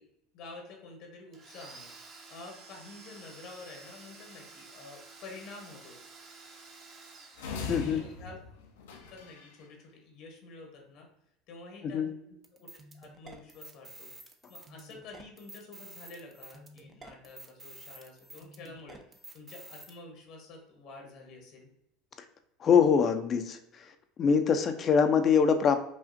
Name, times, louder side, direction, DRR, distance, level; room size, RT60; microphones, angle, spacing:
voice 1, 0.3-6.0 7.7-8.4 9.1-11.1 11.5-12.2 12.5-12.7 12.9-14.1 14.5-21.7, left 3 dB, 65° left, 2 dB, 1.0 m, -49 dB
Domestic sounds home sounds, 1.3-8.1, right 4 dB, 45° right, 1.0 m, -51 dB
sound 1, 7.4-9.6, left 4 dB, 85° left, 0.6 m, -40 dB
voice 2, 7.7-8.0 11.8-12.1 22.2-22.3 22.6-25.8, left 6 dB, 40° left, 8 dB, 0.5 m, -24 dB
sound 2, 12.4-19.9, right 2 dB, 30° right, 0.6 m, -50 dB
5.0 x 2.4 x 2.6 m, 0.80 s
hypercardioid pair, 90°, 0 cm